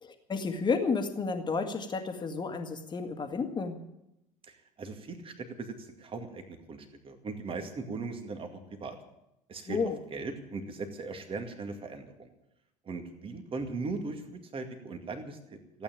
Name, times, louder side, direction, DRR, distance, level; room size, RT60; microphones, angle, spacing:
voice 1, 0.0-3.8 9.7-10.0, left 4 dB, 25° left, 6 dB, 1.9 m, -31 dB
voice 2, 4.5-9.0 9.5-9.8 10.1-12.3 12.9-15.8, right 3 dB, 30° right, 6 dB, 2.2 m, -39 dB
15.5 x 9.1 x 8.9 m, 0.86 s
figure-of-eight pair, 65°, 18 cm